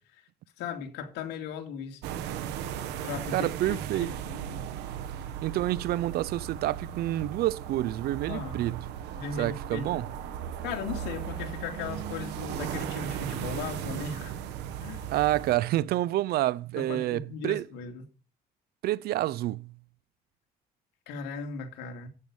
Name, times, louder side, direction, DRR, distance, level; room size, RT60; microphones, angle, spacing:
voice 1, 0.6-2.0 2.8-4.6 8.3-8.6 9.2-10.0 10.6-14.3 14.8-15.1 16.7-18.0 21.1-22.1, left 6 dB, 85° left, 2.4 m, -37 dB
sound 1, 2.0-15.6, right 9 dB, 90° right, 1.3 m, -37 dB
voice 2, 3.3-4.1 5.4-8.9 9.4-10.1 15.1-17.7 18.8-19.7, right 15 dB, 65° right, 0.5 m, -28 dB
9.6 x 8.7 x 5.4 m
cardioid pair, 110°, 17 cm